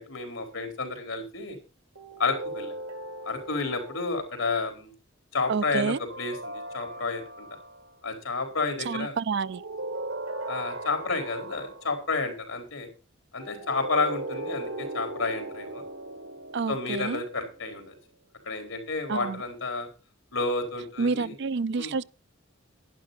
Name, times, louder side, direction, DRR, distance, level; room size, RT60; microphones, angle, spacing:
voice 1, 0.0-1.6 2.2-2.7 3.2-4.9 5.3-7.5 8.0-9.1 10.5-12.9 13.3-15.8 16.7-17.9 18.4-19.9 20.3-21.3 21.8-21.9, left 3 dB, 85° left, 4.5 m, -31 dB
sound 1, 2.0-4.4 6.1-7.9 9.3-12.1 13.4-17.9, right 2 dB, 80° right, 1.8 m, -38 dB
voice 2, 5.5-6.0 8.8-9.6 16.5-17.2 19.1-19.4 21.0-22.0, right 5 dB, 60° right, 0.5 m, -28 dB
11.5 x 10.5 x 4.1 m
head